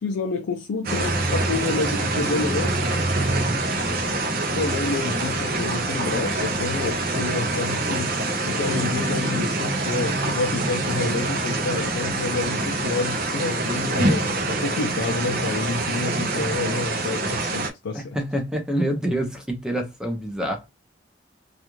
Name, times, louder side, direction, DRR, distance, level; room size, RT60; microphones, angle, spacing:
voice 1, 0.0-3.0 4.6-8.1 8.4-18.2, left 3 dB, 85° left, 0.4 m, -29 dB
sound 1, 0.8-17.7, right 2 dB, 50° right, 0.6 m, -25 dB
voice 2, 17.9-20.7, equal, 5° right, 0.6 m, -27 dB
2.4 x 2.4 x 2.9 m
head